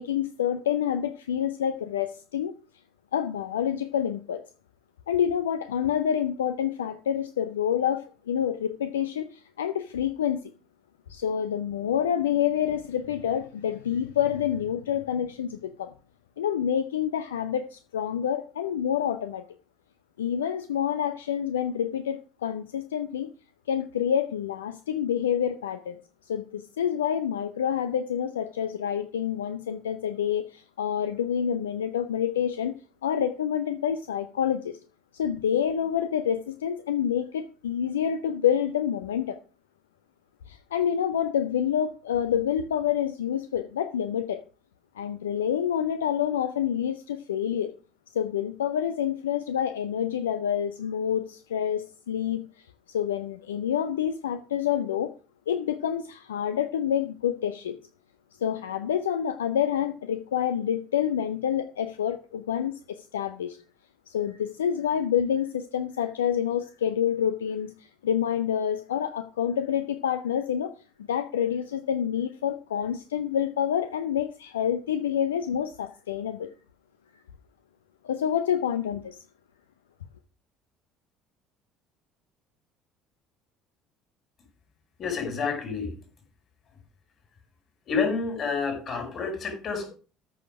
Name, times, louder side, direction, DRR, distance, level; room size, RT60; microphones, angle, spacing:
voice 1, 0.0-2.5 3.1-4.4 5.1-10.4 11.1-15.9 16.4-19.4 20.2-23.3 23.7-26.0 26.3-32.8 33.0-34.8 35.1-39.4 40.5-44.4 45.0-47.7 48.1-55.1 55.5-57.8 58.4-63.6 64.1-70.7 71.1-76.5 78.0-79.2, left 9 dB, 75° left, 0.6 m, -28 dB
voice 2, 85.0-85.9 87.9-89.9, left 5 dB, 45° left, 5.4 m, -29 dB
13.5 x 6.5 x 5.0 m
figure-of-eight pair, 55°, 0 cm